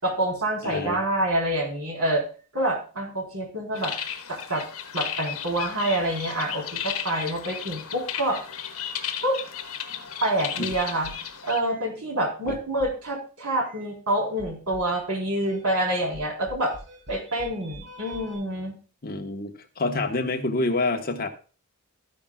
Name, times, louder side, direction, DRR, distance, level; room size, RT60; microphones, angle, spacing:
voice 1, 0.0-2.2 2.5-3.9 4.3-4.7 4.9-8.4 9.2-9.4 10.2-11.1 11.4-16.7 17.1-18.7, right 1 dB, 85° right, 0 dB, 4.1 m, -27 dB
voice 2, 0.6-1.0 10.6-10.7 12.5-12.6 19.0-21.3, left 2 dB, 45° left, 5 dB, 1.3 m, -27 dB
sound 1, 3.7-11.6, left 8 dB, 85° left, 1.3 m, -34 dB
sound 2, 10.7-11.3 11.6-11.9 12.5-13.0 13.6-13.9 14.4-15.0 15.5-18.4, equal, 60° right, 5.4 m, -45 dB
13.0 x 10.0 x 2.4 m, 0.37 s
head